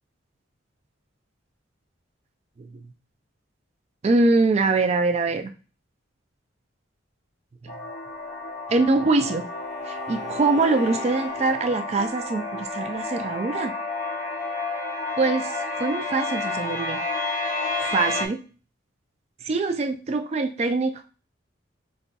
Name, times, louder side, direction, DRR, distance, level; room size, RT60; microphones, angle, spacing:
voice 1, 4.0-5.5 7.6-7.7 8.7-9.5 9.9-13.7 15.2-17.0 17.8-18.4 19.4-21.0, right 3 dB, 30° right, 7 dB, 0.3 m, -23 dB
sound 1, 7.7-18.3, left 2 dB, 40° left, 0.7 m, -31 dB
Bowed string instrument, 8.2-11.8, left 2 dB, 75° left, 1.0 m, -39 dB
5.1 x 2.5 x 2.3 m, 0.35 s
head